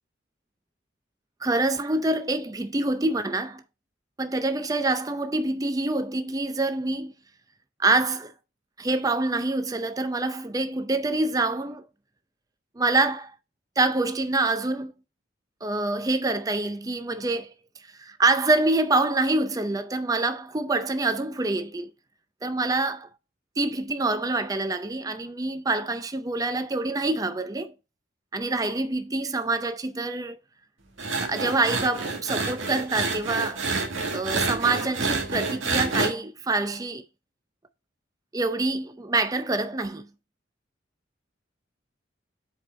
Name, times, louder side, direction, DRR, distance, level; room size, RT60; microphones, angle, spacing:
voice 1, 1.4-3.6 4.2-7.1 7.8-8.3 8.8-11.9 12.8-13.3 13.8-14.9 15.6-17.5 17.8-21.9 22.4-23.1 23.6-27.7 28.3-30.4 31.2-33.6 34.1-37.0 38.3-40.1, right 2 dB, 20° right, 0.5 m, -26 dB
sound 1, 31.0-36.1, right 3 dB, 80° right, 1.6 m, -28 dB
8.0 x 4.6 x 3.2 m
head